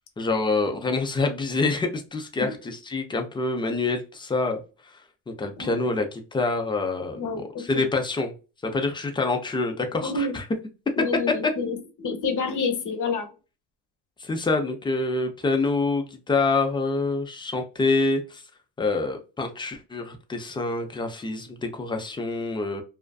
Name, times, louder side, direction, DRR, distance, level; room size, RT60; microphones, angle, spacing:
voice 1, 0.2-4.6 5.3-8.3 8.6-10.4 14.2-18.4 18.8-22.8, left 3 dB, 10° left, 5 dB, 0.3 m, -26 dB
voice 2, 5.6-6.0 7.1-7.8 10.0-10.4 11.0-13.3, left 4 dB, 45° left, 7 dB, 0.7 m, -29 dB
2.4 x 2.3 x 2.2 m, 0.33 s
cardioid pair, 105°, 46 cm